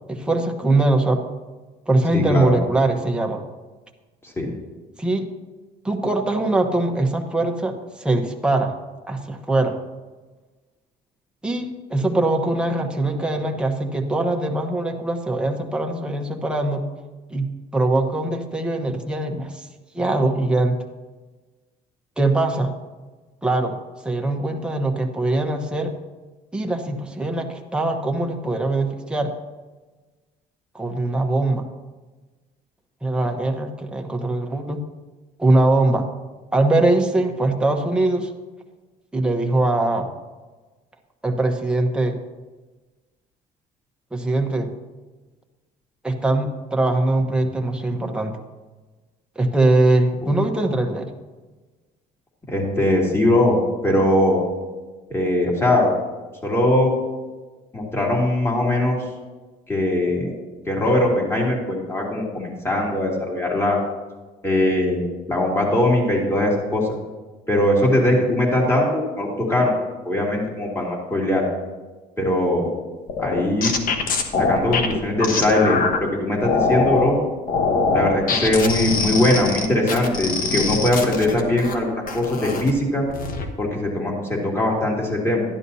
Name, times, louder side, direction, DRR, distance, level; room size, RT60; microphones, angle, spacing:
voice 1, 0.1-1.2 1.9-3.4 5.0-5.3 5.8-8.7 9.0-9.8 11.4-16.8 17.3-19.7 19.9-20.8 22.2-22.7 23.4-23.8 24.0-25.9 26.5-29.3 30.7-31.7 33.0-34.8 35.4-36.1 36.5-38.3 39.1-40.1 41.2-42.2 44.1-44.7 46.0-48.4 49.3-51.1, right 2 dB, 5° right, 2 dB, 1.1 m, -22 dB
voice 2, 2.1-2.6 4.2-4.5 52.5-54.4 55.1-55.9 56.4-56.9 57.7-59.0 59.7-60.3 60.7-63.8 64.4-66.9 67.5-69.7 70.0-71.4 72.2-72.7 73.2-73.7 74.4-77.2 77.9-83.1 83.6-85.4, left 1 dB, 15° left, -2 dB, 2.8 m, -21 dB
sound 1, 73.1-76.0 76.4-77.1 77.5-81.7 82.1-82.7 83.1-83.5, left 4 dB, 55° left, 1.2 m, -23 dB
12.5 x 10.5 x 2.8 m, 1.3 s
cardioid pair, 110°, 17 cm